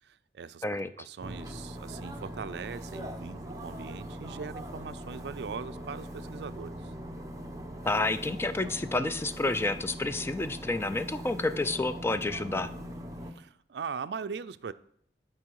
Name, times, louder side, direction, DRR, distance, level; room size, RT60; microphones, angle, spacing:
voice 1, 0.0-6.9 13.2-14.7, right 6 dB, 70° right, 14 dB, 0.4 m, -40 dB
sound 1, 1.2-13.3, equal, 20° right, 0.9 m, -41 dB
voice 2, 7.8-12.7, left 2 dB, 15° left, 12 dB, 0.3 m, -29 dB
11.5 x 4.9 x 4.7 m, 0.67 s
head